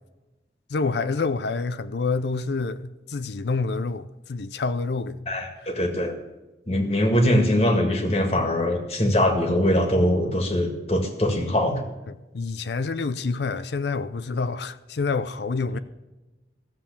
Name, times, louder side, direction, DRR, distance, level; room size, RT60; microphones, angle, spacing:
voice 1, 0.7-5.3 12.1-15.8, left 4 dB, 70° left, 0.5 m, -27 dB
voice 2, 5.3-6.1 6.7-11.8, left 1 dB, 35° left, 1.8 m, -22 dB
14.5 x 7.5 x 6.9 m
head